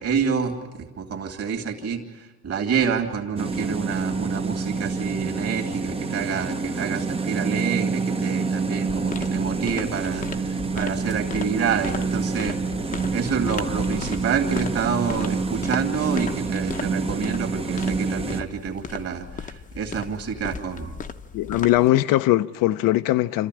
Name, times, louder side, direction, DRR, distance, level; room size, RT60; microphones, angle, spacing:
voice 1, 0.0-2.0 2.4-12.6 13.1-21.0, right 6 dB, 45° right, 2.8 m, -28 dB
sound 1, 3.4-18.4, right 4 dB, 15° right, 0.8 m, -27 dB
sound 2, 8.9-21.9, left 5 dB, 20° left, 0.8 m, -36 dB
voice 2, 21.3-23.5, left 16 dB, 70° left, 0.7 m, -20 dB
27.5 x 14.0 x 10.0 m
cardioid pair, 135°, 35 cm